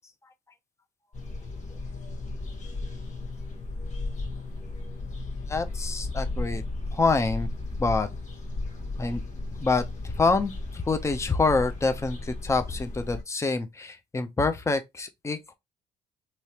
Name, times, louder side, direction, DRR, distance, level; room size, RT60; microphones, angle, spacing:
sound 1, 1.1-13.2, left 2 dB, 45° left, 1.3 m, -35 dB
voice 1, 5.5-6.6 6.9-7.5 7.8-8.1 9.0-9.2 9.6-15.5, left 3 dB, 15° left, 0.6 m, -26 dB
3.1 x 2.8 x 2.9 m
hypercardioid pair, 55°, 16 cm